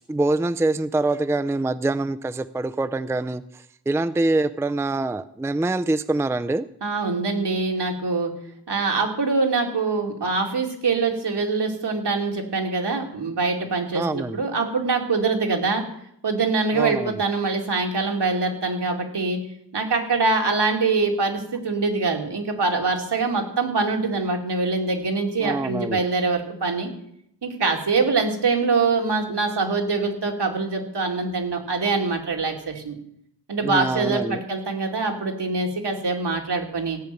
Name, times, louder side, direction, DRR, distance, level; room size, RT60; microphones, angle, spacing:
voice 1, 0.1-6.7 13.9-14.4 16.7-17.2 25.4-26.0 33.6-34.4, right 2 dB, 5° right, 13 dB, 0.4 m, -25 dB
voice 2, 6.8-8.3 8.7-15.8 16.2-19.4 19.7-26.9 27.4-33.0 33.5-37.0, right 4 dB, 75° right, 1 dB, 2.6 m, -24 dB
16.0 x 5.7 x 9.3 m, 0.73 s
wide cardioid pair, 80°, 41 cm